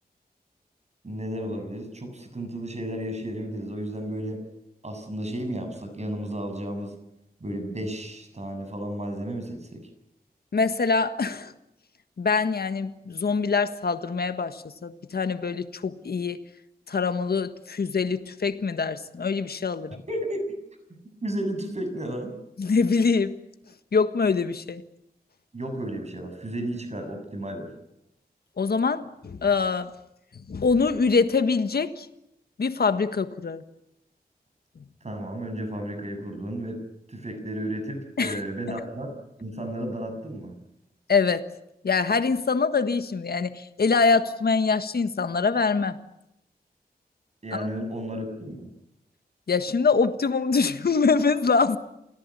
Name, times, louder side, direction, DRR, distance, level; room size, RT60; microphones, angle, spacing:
voice 1, 1.0-4.4 4.8-6.9 7.4-9.8 20.1-20.5 21.2-22.3 25.5-27.7 35.0-36.8 37.1-39.1 39.4-40.6 47.4-48.7, right 1 dB, 45° right, 6 dB, 7.4 m, -33 dB
voice 2, 10.5-11.5 12.2-16.4 16.9-20.0 22.6-23.3 23.9-24.8 28.6-29.9 30.3-32.1 32.6-33.6 38.2-38.4 41.1-41.5 41.8-46.0 47.5-47.7 49.5-51.8, left 4 dB, 80° left, 10 dB, 1.5 m, -24 dB
28.5 x 18.5 x 9.9 m, 0.83 s
wide cardioid pair, 85°, 16 cm